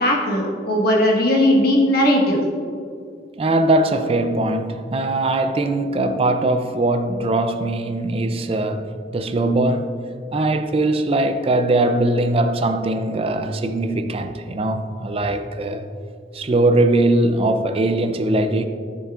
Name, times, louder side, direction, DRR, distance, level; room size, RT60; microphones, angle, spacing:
voice 1, 0.0-2.4, left 1 dB, 60° left, 1.4 m, -18 dB
voice 2, 3.4-8.9 9.1-9.9 10.3-15.8 16.3-18.6, right 2 dB, 35° right, 0.4 m, -20 dB
10.0 x 6.8 x 2.5 m
head